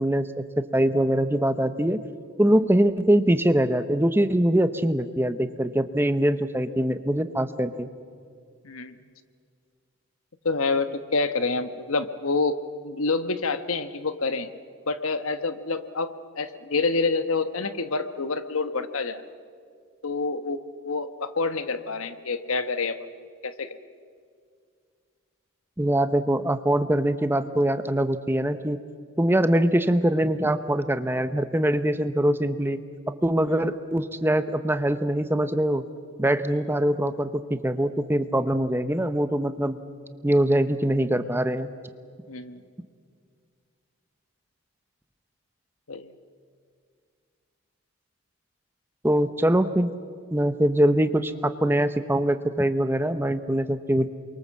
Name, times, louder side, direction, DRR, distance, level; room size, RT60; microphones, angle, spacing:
voice 1, 0.0-2.0 2.4-7.9 25.8-28.8 29.2-32.8 33.2-35.8 36.2-39.8 40.2-41.7 49.0-49.9 50.3-54.1, right 1 dB, 10° right, 11 dB, 0.7 m, -23 dB
voice 2, 10.4-12.6 12.8-14.5 14.9-19.2 20.0-23.0 23.4-23.8 42.3-42.6 45.9-46.1, left 3 dB, 75° left, 11 dB, 1.2 m, -27 dB
28.5 x 23.0 x 7.5 m, 2.1 s
head